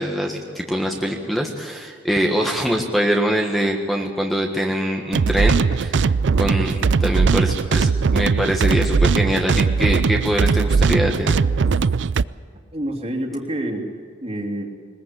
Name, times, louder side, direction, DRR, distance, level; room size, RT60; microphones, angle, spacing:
voice 1, 0.0-6.1 6.4-6.7 7.0-11.4, equal, ahead, 1 dB, 1.5 m, -23 dB
sound 1, 5.1-12.2, right 5 dB, 70° right, 0.5 m, -19 dB
voice 2, 12.7-14.7, right 1 dB, 35° right, 1 dB, 3.0 m, -28 dB
21.5 x 20.5 x 8.4 m, 2.2 s
head